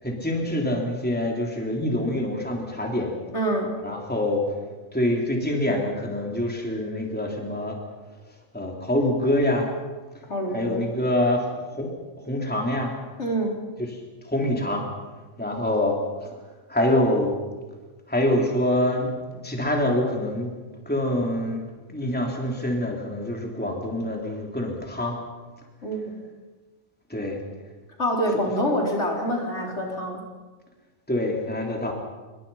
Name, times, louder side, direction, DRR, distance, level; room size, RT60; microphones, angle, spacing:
voice 1, 0.0-3.2 3.8-4.4 4.9-7.8 8.5-9.7 10.5-11.9 12.2-12.9 13.8-14.0 14.2-14.8 15.4-16.3 16.7-17.3 18.1-19.1 19.4-20.5 20.9-21.6 21.9-25.2 27.1-27.4 31.1-31.9, left 1 dB, 5° left, 0 dB, 3.5 m, -25 dB
voice 2, 3.3-3.7 10.3-10.9 13.2-13.5 25.8-26.2 28.0-30.2, equal, 55° left, -1 dB, 4.5 m, -26 dB
27.0 x 23.0 x 5.7 m, 1.3 s
omnidirectional pair, 1.4 m